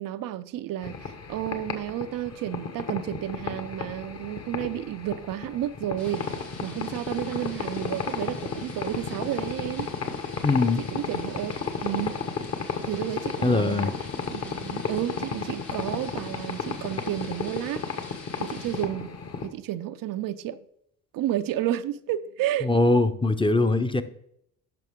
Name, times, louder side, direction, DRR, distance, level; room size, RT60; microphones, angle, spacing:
voice 1, 0.0-9.9 10.8-11.6 11.8-12.2 12.8-13.9 14.3-17.9 18.4-19.1 19.4-20.6 21.1-22.7, right 12 dB, 60° right, 0.6 m, -31 dB
sound 1, 0.8-19.5, left 5 dB, 40° left, 1.5 m, -33 dB
sound 2, 6.0-18.8, left 4 dB, 80° left, 2.3 m, -46 dB
voice 2, 10.4-10.8 13.4-13.9 22.6-24.0, left 2 dB, 15° left, 0.8 m, -22 dB
10.5 x 6.3 x 3.7 m
hypercardioid pair, 55°, 37 cm